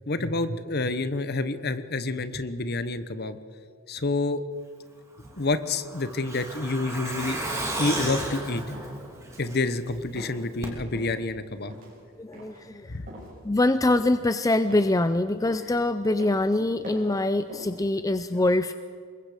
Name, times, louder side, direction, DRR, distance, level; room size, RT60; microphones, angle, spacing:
voice 1, 0.1-3.4 3.9-4.4 5.4-7.4 7.8-8.6 9.4-11.7 12.9-13.1, left 3 dB, 45° left, 12 dB, 1.0 m, -28 dB
Truck, 5.2-9.9 10.2-10.3 10.6-10.7, right 1 dB, 15° right, 3.1 m, -33 dB
sound 1, 8.7-9.0 9.4-9.8 10.2-10.4 10.9-11.2 11.6-11.9 12.3-12.6 13.1-13.3 13.9-14.2 14.7-15.0 15.4-15.7 16.2-16.5 16.8-17.2 17.5-17.8, right 1 dB, 40° right, 7.1 m, -43 dB
voice 2, 12.2-12.9 13.4-18.7, left 2 dB, 15° left, 11 dB, 0.4 m, -24 dB
26.0 x 22.0 x 5.1 m, 2.2 s
head